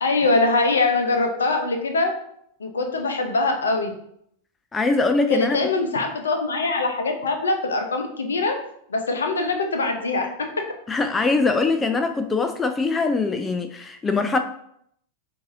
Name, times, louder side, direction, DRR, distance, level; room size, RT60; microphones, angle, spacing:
voice 1, 0.0-2.1 2.6-3.9 5.3-8.6 8.9-10.3, left 3 dB, 70° left, 5 dB, 0.7 m, -23 dB
voice 2, 4.7-5.6 10.9-14.4, left 3 dB, 15° left, 8 dB, 0.3 m, -22 dB
7.4 x 2.6 x 2.6 m, 0.70 s
figure-of-eight pair, 90°, 0 cm